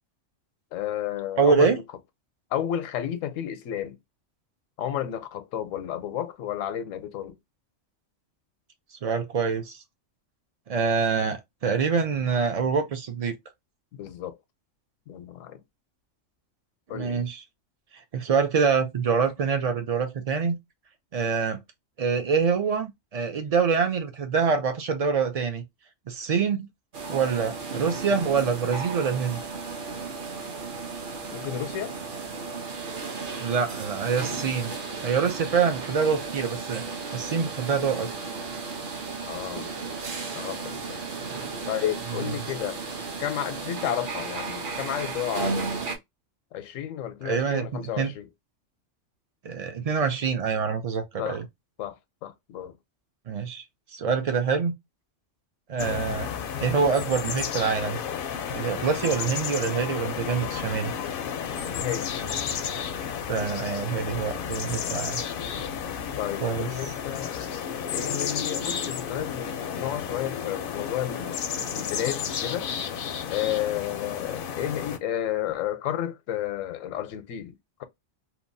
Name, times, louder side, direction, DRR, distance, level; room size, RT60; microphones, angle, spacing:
voice 1, 0.7-1.8 2.5-4.0 4.8-7.4 13.9-14.4 15.1-15.6 16.9-17.2 31.3-31.9 39.3-39.7 40.3-41.0 41.7-42.8 43.2-45.7 46.5-48.3 51.2-51.4 51.8-52.7 61.7-62.1 65.4-65.6 66.2-67.4 67.9-71.3 71.7-72.7 73.3-77.8, left 11 dB, 85° left, 1.0 m, -32 dB
voice 2, 1.4-1.8 9.0-9.8 10.7-13.3 16.9-17.4 17.9-20.6 21.1-21.6 22.0-25.6 26.1-26.7 27.1-29.4 33.4-34.7 35.0-36.8 37.1-38.1 47.2-48.1 49.4-51.4 53.3-53.6 53.9-54.7 55.7-56.3 56.6-58.0 58.5-60.9 63.3-65.2 66.4-66.7, right 5 dB, 70° right, 0.3 m, -25 dB
sound 1, 26.9-46.0, right 4 dB, 50° right, 0.7 m, -34 dB
sound 2, 55.8-75.0, left 7 dB, 60° left, 0.6 m, -32 dB
2.9 x 2.3 x 2.5 m
omnidirectional pair, 1.3 m